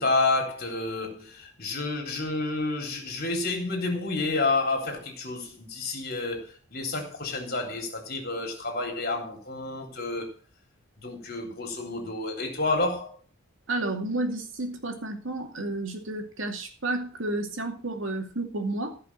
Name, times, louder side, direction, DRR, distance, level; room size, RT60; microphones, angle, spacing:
voice 1, 0.0-10.3 11.0-13.2, left 3 dB, 45° left, 3.9 m, -29 dB
voice 2, 13.7-19.0, right 2 dB, 60° right, 2.5 m, -31 dB
15.5 x 5.8 x 7.5 m
head